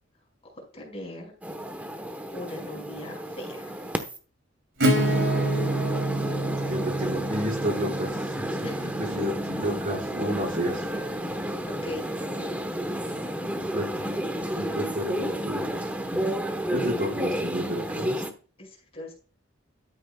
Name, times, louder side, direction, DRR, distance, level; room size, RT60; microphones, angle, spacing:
voice 1, 0.4-1.3 2.3-3.9 8.6-9.4 10.9-11.3 11.7-12.6 13.1-13.4 14.0-14.5 18.6-19.1, left 1 dB, 30° left, 0 dB, 5.2 m, -41 dB
sound 1, 1.4-4.2 4.9-18.3, right 1 dB, 10° right, 1.1 m, -31 dB
Acoustic guitar / Strum, 4.8-10.3, right 1 dB, 65° right, 3.0 m, -28 dB
voice 2, 6.7-8.2 9.0-10.8 13.5-13.9 14.6-15.7 16.7-18.2, equal, 45° right, -1 dB, 4.8 m, -30 dB
13.0 x 8.7 x 2.3 m, 0.37 s
head